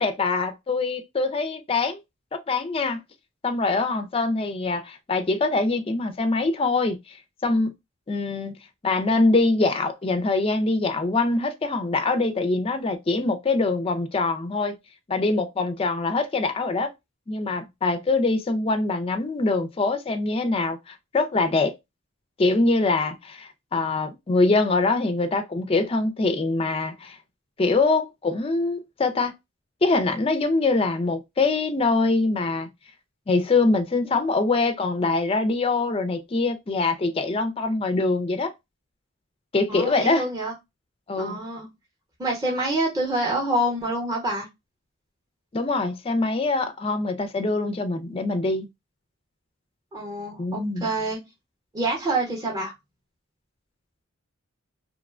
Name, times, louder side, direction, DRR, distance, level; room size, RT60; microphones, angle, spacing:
voice 1, 0.0-2.0 2.3-3.0 3.4-7.2 7.4-7.7 8.1-8.6 8.8-14.8 15.1-16.9 17.3-21.7 22.4-27.2 27.6-29.3 29.8-32.7 33.3-38.5 39.5-40.3 41.1-41.4 45.5-48.7 50.4-50.8, left 3 dB, 25° left, 0.4 m, -24 dB
voice 2, 39.7-40.5 41.1-41.7 42.2-44.5 49.9-51.2 51.7-52.7, right 1 dB, 15° right, 0.8 m, -26 dB
3.0 x 2.1 x 2.4 m
head